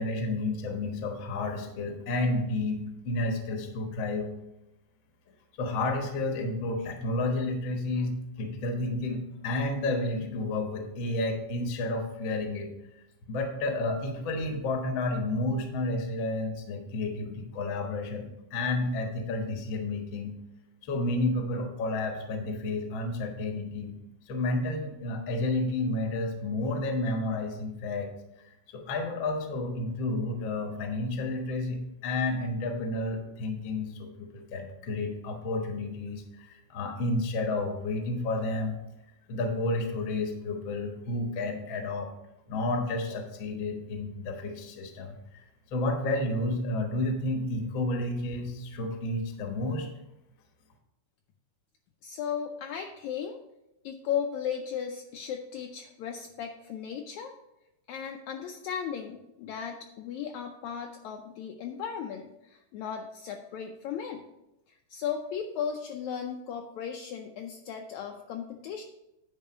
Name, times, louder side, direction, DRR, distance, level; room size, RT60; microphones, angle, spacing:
voice 1, 0.0-4.3 5.6-12.7 13.3-20.4 20.9-23.9 24.3-28.1 28.7-38.8 39.3-42.1 42.5-45.4 45.7-49.9, left 2 dB, 55° left, 4 dB, 1.4 m, -31 dB
voice 2, 52.0-53.4 53.8-57.3 57.9-64.2 64.7-68.8, left 8 dB, 80° left, 3 dB, 1.7 m, -36 dB
10.5 x 4.6 x 5.0 m, 0.92 s
omnidirectional pair, 3.7 m